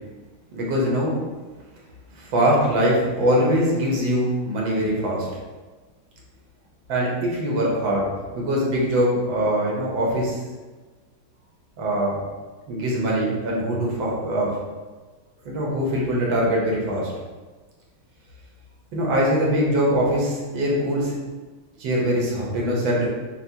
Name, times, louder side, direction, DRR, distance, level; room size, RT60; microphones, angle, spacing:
voice 1, 0.5-1.1 2.1-5.3 6.9-10.4 11.8-12.2 12.7-14.6 15.5-17.1 18.9-21.2 21.8-23.1, equal, 90° right, -3 dB, 1.7 m, -22 dB
5.8 x 2.6 x 2.7 m, 1.3 s
omnidirectional pair, 2.0 m